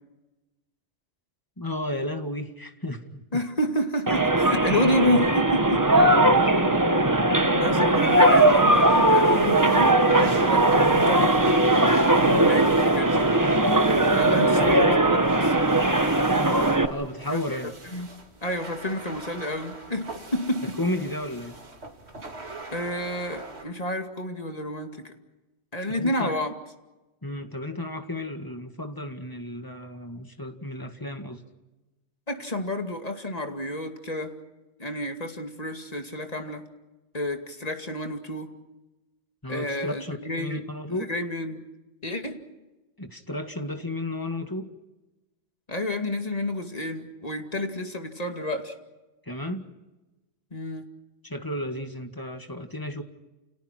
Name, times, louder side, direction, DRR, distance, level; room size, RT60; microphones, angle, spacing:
voice 1, 1.6-3.2 5.8-6.8 12.2-12.6 14.4-14.6 16.9-17.7 20.6-21.6 26.0-26.4 27.2-31.4 39.4-41.1 43.0-44.7 49.3-49.7 51.2-53.0, left 1 dB, 15° left, 6 dB, 2.0 m, -33 dB
voice 2, 3.3-5.9 7.5-11.4 12.1-13.2 14.1-15.5 17.3-17.4 17.9-18.1 18.4-20.8 22.7-25.1 25.7-26.5 32.3-34.4 34.8-36.6 37.1-38.6 39.5-41.7 42.0-42.5 45.7-48.7 50.5-50.9, left 1 dB, 30° left, 4 dB, 2.5 m, -30 dB
sound 1, 4.1-16.9, right 1 dB, 15° right, 1.2 m, -19 dB
sound 2, 8.0-23.7, right 2 dB, 60° right, 2.9 m, -41 dB
29.5 x 29.5 x 4.6 m, 1.1 s
omnidirectional pair, 1.2 m